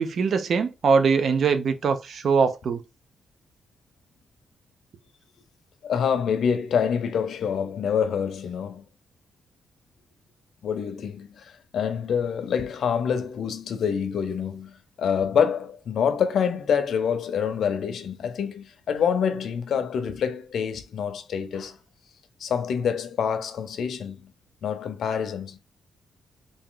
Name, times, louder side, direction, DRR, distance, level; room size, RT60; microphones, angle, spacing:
voice 1, 0.0-2.8, right 5 dB, 50° right, 0.5 m, -22 dB
voice 2, 5.8-8.8 10.6-21.8 22.4-24.3 24.6-25.6, left 7 dB, 60° left, 0.7 m, -26 dB
3.5 x 2.8 x 3.7 m
wide cardioid pair, 160°, 0 cm